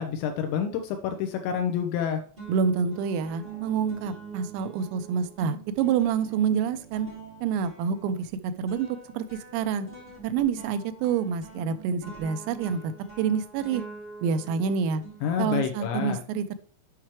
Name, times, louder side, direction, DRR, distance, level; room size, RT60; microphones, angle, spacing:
voice 1, 0.0-2.2 15.2-16.2, left 8 dB, 85° left, 4 dB, 2.6 m, -28 dB
sound 1, 1.6-2.0 2.4-15.8, right 4 dB, 20° right, 1.4 m, -45 dB
voice 2, 2.5-7.1 7.4-8.2 8.4-8.9 9.2-9.3 9.5-9.9 10.2-12.9 13.2-13.8 14.2-15.0 15.4-16.6, right 6 dB, 85° right, 10 dB, 3.4 m, -27 dB
8.8 x 5.8 x 3.1 m, 0.44 s
omnidirectional pair, 6.0 m